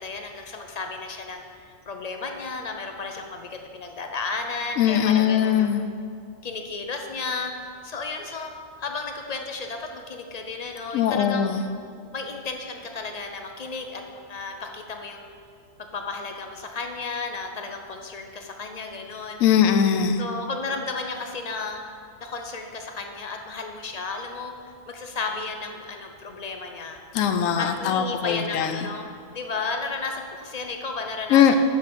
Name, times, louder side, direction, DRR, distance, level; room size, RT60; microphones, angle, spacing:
voice 1, 0.0-5.8 6.4-8.5 8.8-11.6 12.1-15.3 15.9-19.4 20.2-21.9 22.2-27.0 27.6-31.5, left 3 dB, 50° left, 4 dB, 0.5 m, -33 dB
voice 2, 4.8-5.8 10.9-11.7 19.4-20.2 27.1-28.9 31.3-31.6, left 8 dB, 90° left, 7 dB, 1.0 m, -21 dB
6.3 x 5.3 x 6.8 m, 2.2 s
omnidirectional pair, 1.3 m